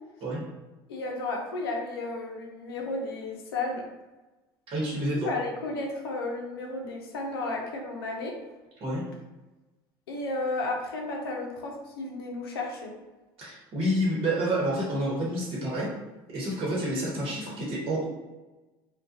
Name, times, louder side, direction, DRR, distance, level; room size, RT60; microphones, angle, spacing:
voice 1, 0.9-3.8 5.2-8.4 10.1-13.0, left 2 dB, 90° left, 1 dB, 0.5 m, -33 dB
voice 2, 4.7-5.3 8.8-9.0 13.4-15.9 16.3-18.0, right 1 dB, 45° right, -5 dB, 1.0 m, -29 dB
2.3 x 2.2 x 2.5 m, 1.1 s
hypercardioid pair, 75°, 12 cm